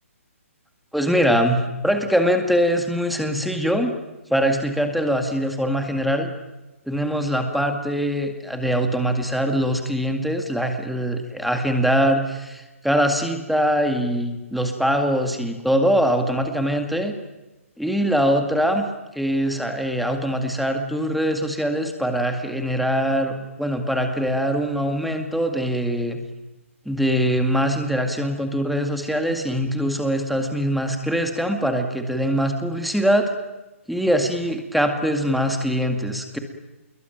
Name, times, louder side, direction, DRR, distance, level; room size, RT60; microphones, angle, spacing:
voice 1, 0.9-3.9 4.3-6.3 6.9-17.1 17.8-18.9 19.1-26.2 26.9-33.3 33.9-36.4, equal, ahead, 5 dB, 2.1 m, -22 dB
26.0 x 22.0 x 9.2 m, 1.0 s
hypercardioid pair, 160°, 8 cm